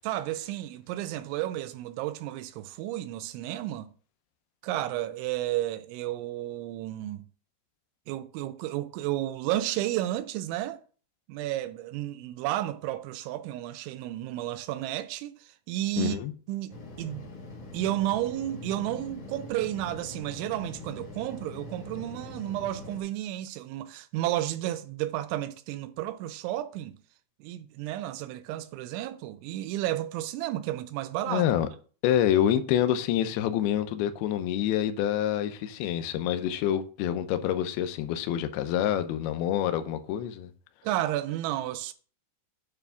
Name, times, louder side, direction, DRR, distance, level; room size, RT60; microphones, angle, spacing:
voice 1, 0.0-3.9 4.6-7.2 8.1-10.8 11.3-16.2 16.5-17.3 17.7-27.0 27.4-31.5 40.8-41.9, right 14 dB, 90° right, 3.0 m, -32 dB
voice 2, 16.0-16.3 31.3-31.7 32.0-40.5, left 10 dB, 85° left, 2.2 m, -27 dB
sound 1, 16.7-23.0, left 3 dB, 45° left, 2.2 m, -43 dB
9.1 x 3.5 x 6.9 m
omnidirectional pair, 5.3 m